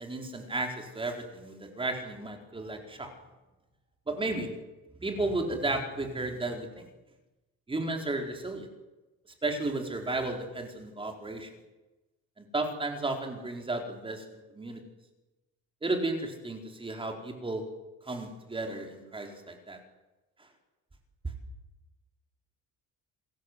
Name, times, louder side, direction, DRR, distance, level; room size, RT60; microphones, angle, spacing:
voice 1, 0.0-3.1 4.1-4.5 5.0-6.7 7.7-8.7 9.4-11.5 12.5-14.2 14.5-14.8 15.8-17.7 18.1-19.8, right 2 dB, 15° right, 3 dB, 4.3 m, -33 dB
27.5 x 21.0 x 8.2 m, 1.1 s
cardioid pair, 170°, 35 cm